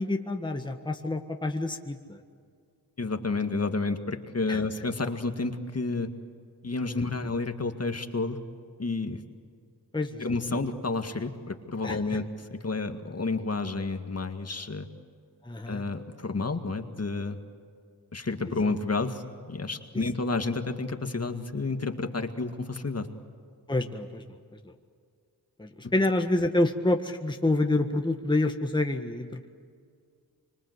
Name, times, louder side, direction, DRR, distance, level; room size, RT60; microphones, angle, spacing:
voice 1, 0.0-2.2 4.5-4.6 6.9-7.0 9.9-10.3 11.8-12.2 15.4-15.8 18.4-18.7 19.9-20.0 23.7-24.2 24.6-24.7 25.6-29.5, left 2 dB, 10° left, 4 dB, 1.7 m, -28 dB
voice 2, 3.0-6.1 6.6-8.4 8.8-9.2 10.2-14.9 15.7-17.4 18.1-23.1 25.8-25.9, left 3 dB, 40° left, 6 dB, 2.0 m, -30 dB
25.5 x 25.5 x 8.1 m, 2.2 s
cardioid pair, 65°, 39 cm